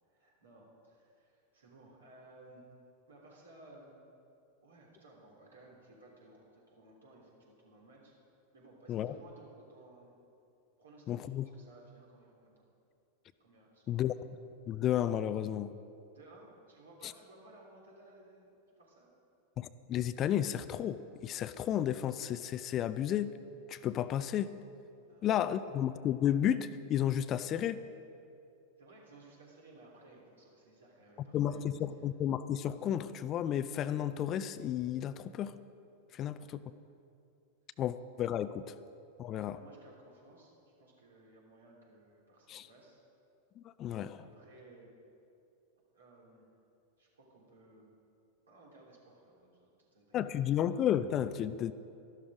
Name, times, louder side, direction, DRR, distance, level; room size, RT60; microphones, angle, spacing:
voice 1, 0.1-2.6 3.1-4.0 4.6-8.1 8.5-10.2 10.8-12.5 13.4-14.1 16.1-19.1 25.1-25.3 28.8-32.1 36.3-36.6 39.2-40.5 40.8-43.0 44.2-44.9 45.9-46.5 47.0-47.9 48.5-50.4, right 2 dB, 70° right, -3 dB, 3.3 m, -58 dB
voice 2, 11.1-11.5 13.9-14.1 14.7-15.7 17.0-17.1 19.6-23.3 23.7-24.5 25.2-27.8 31.3-35.5 36.1-36.6 37.8-38.7 39.2-39.6 42.5-42.7 43.6-44.2 50.1-51.7, left 10 dB, 30° left, 14 dB, 0.4 m, -32 dB
13.0 x 12.0 x 5.0 m, 2.6 s
figure-of-eight pair, 90°, 0 cm